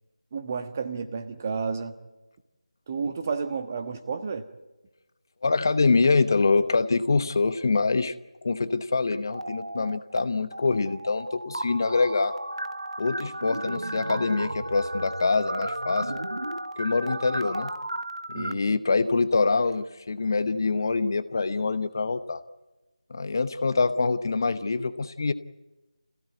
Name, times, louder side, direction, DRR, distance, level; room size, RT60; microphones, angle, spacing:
voice 1, 0.3-1.9 2.9-4.5 18.3-18.6, right 5 dB, 25° right, 8 dB, 1.4 m, -31 dB
voice 2, 5.4-8.1 8.4-12.3 13.0-16.1 16.8-17.7 18.3-22.4 23.1-25.3, left 4 dB, 35° left, 12 dB, 0.9 m, -25 dB
sound 1, 9.3-10.2 10.5-18.5, right 1 dB, 85° right, 1.1 m, -34 dB
27.0 x 16.0 x 9.5 m, 1.1 s
figure-of-eight pair, 165°, 3 cm